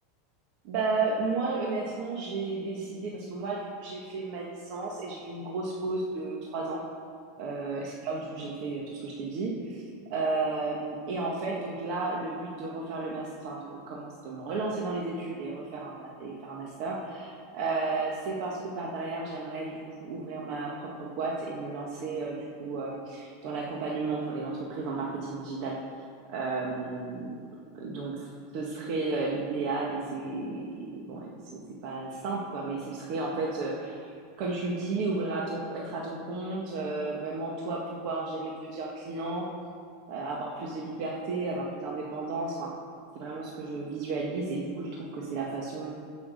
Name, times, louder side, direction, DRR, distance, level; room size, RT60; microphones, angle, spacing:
voice 1, 0.6-6.8 7.4-9.8 10.1-25.7 26.3-27.4 27.7-28.2 28.5-39.5 40.1-42.7 43.1-45.9, right 3 dB, 50° right, -2 dB, 1.6 m, -33 dB
15.5 x 6.1 x 6.5 m, 2.2 s
supercardioid pair, 155°, 0 cm